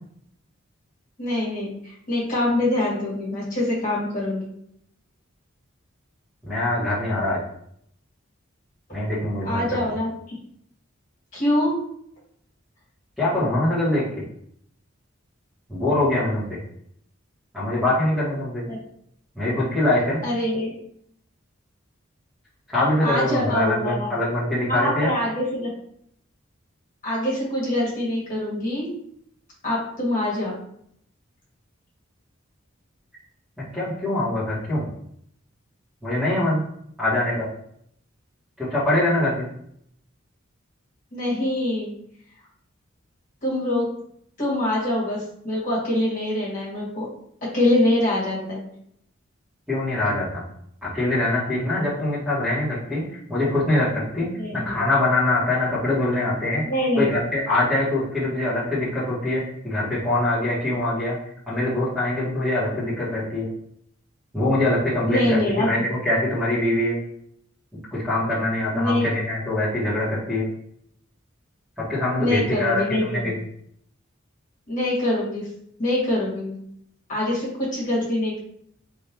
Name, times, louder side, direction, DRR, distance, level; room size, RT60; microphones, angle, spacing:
voice 1, 1.2-4.5 9.4-10.4 11.3-11.8 18.7-18.8 20.2-20.7 23.0-24.2 24.7-25.7 27.0-28.9 29.6-30.6 41.1-41.9 43.4-43.9 44.4-47.1 47.4-48.6 54.4-54.8 56.7-57.1 65.1-65.8 68.7-69.1 72.2-73.3 74.7-75.5 75.8-76.5 77.1-78.4, left 1 dB, 40° left, -7 dB, 1.8 m, -24 dB
voice 2, 6.4-7.4 8.9-9.6 13.2-14.0 15.7-16.6 17.5-18.6 19.3-20.2 22.7-25.1 33.7-34.8 36.0-36.6 37.0-37.5 38.6-39.5 49.7-50.4 50.8-54.3 54.5-56.6 56.9-61.2 61.5-63.5 64.3-67.0 67.9-70.4 71.8-73.4, left 1 dB, 5° right, -9 dB, 1.7 m, -23 dB
3.5 x 3.0 x 4.5 m, 0.69 s
head